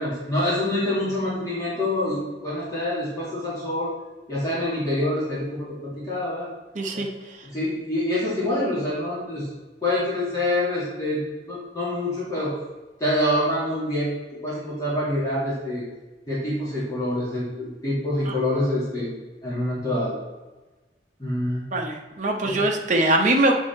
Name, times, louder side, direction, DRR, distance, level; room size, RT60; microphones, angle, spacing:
voice 1, 0.0-3.9 4.3-6.5 6.9-7.0 7.4-9.5 9.8-12.5 13.0-14.1 14.4-15.8 16.3-19.1 19.4-20.2 21.2-21.6 22.4-22.7, left 1 dB, 20° left, -9 dB, 2.2 m, -26 dB
voice 2, 6.7-7.1 18.3-18.4 21.7-23.5, right 2 dB, 45° right, 2 dB, 0.9 m, -22 dB
8.3 x 3.7 x 4.4 m, 1.2 s
head